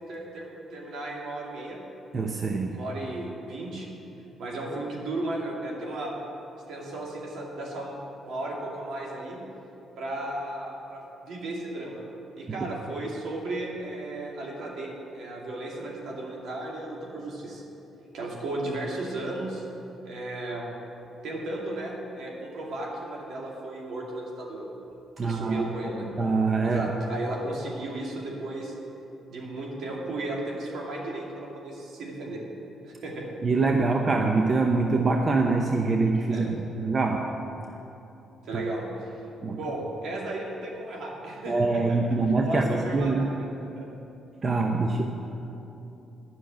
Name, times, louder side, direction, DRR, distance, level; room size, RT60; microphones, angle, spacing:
voice 1, 0.1-1.8 2.7-3.9 4.4-6.1 6.7-9.4 10.0-12.0 12.4-17.6 18.1-19.7 20.0-20.7 21.2-24.7 25.2-26.1 26.6-28.7 29.3-32.4 32.8-33.2 36.3-36.5 38.4-39.1 39.6-42.0 42.3-43.9, right 2 dB, 70° right, -2 dB, 2.4 m, -35 dB
voice 2, 2.1-2.8 25.2-25.7 26.2-26.9 33.4-37.3 38.5-38.6 39.4-39.6 41.5-43.3 44.4-45.0, right 3 dB, 35° right, 2 dB, 0.8 m, -24 dB
10.0 x 6.4 x 9.0 m, 2.9 s
cardioid pair, 90°, 0 cm